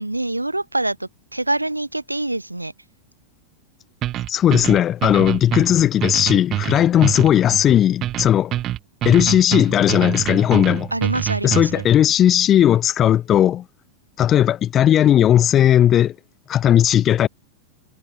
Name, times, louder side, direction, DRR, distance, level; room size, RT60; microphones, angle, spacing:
voice 1, 0.0-2.7 6.9-7.1 9.1-9.4 10.9-11.8, right 2 dB, 85° right, 0.8 m, -25 dB
sound 1, 4.0-11.9, right 13 dB, 35° right, 0.4 m, -25 dB
voice 2, 4.3-8.6 9.0-10.9 11.4-13.6 14.2-16.1 16.5-17.3, left 11 dB, 30° left, 0.5 m, -16 dB
figure-of-eight pair, 90°, 0 cm